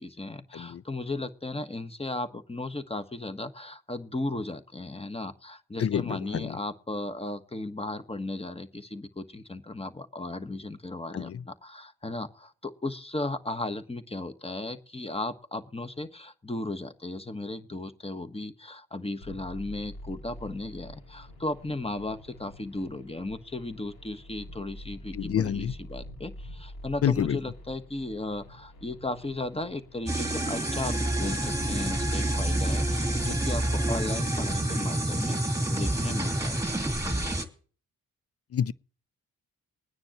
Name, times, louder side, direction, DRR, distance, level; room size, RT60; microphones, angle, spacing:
voice 1, 0.0-37.3, left 2 dB, 15° left, 1.3 m, -36 dB
voice 2, 5.8-6.6 11.1-11.4 25.1-25.7 27.0-27.4 38.5-38.7, left 9 dB, 35° left, 0.5 m, -28 dB
sound 1, 19.2-34.6, left 1 dB, 70° left, 4.8 m, -45 dB
sound 2, 30.1-37.4, right 1 dB, 10° right, 2.6 m, -28 dB
21.5 x 9.6 x 3.0 m
hypercardioid pair, 40°, 40 cm